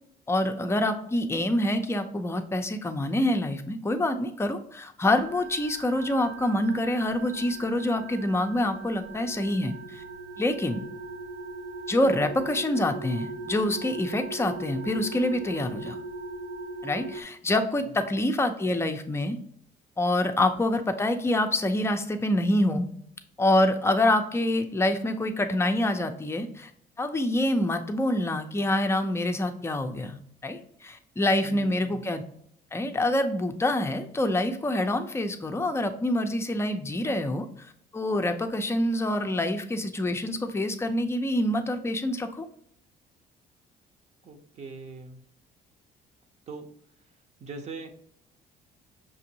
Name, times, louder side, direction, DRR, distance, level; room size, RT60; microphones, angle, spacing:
voice 1, 0.3-10.0 10.4-10.9 11.9-16.0 16.8-19.4 20.0-22.9 23.4-26.7 27.0-32.2 32.7-37.7 37.9-42.5, left 1 dB, 15° left, 6 dB, 0.5 m, -26 dB
sound 1, 5.2-17.2, right 3 dB, 80° right, 0.6 m, -39 dB
voice 2, 31.4-32.0 44.2-45.2 46.5-46.7 47.4-47.9, right 3 dB, 40° right, 5 dB, 0.8 m, -41 dB
6.1 x 2.5 x 2.8 m, 0.67 s
cardioid pair, 110°, 17 cm